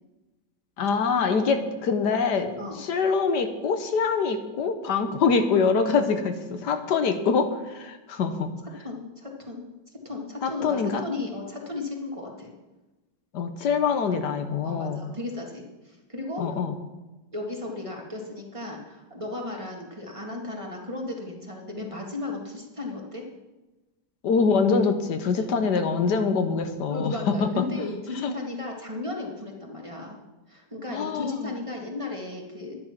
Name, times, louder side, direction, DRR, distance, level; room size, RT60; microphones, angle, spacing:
voice 1, 0.8-8.5 10.4-11.0 13.3-15.0 16.4-16.7 24.2-27.6 28.2-28.3 30.9-31.5, left 5 dB, 75° left, 7 dB, 1.6 m, -24 dB
voice 2, 8.8-9.6 10.0-12.5 14.6-16.6 17.3-23.3 25.4-25.5 26.9-30.2 30.5-32.8, left 2 dB, 20° right, 0 dB, 2.0 m, -35 dB
11.0 x 10.5 x 5.9 m, 1.1 s
omnidirectional pair, 1.8 m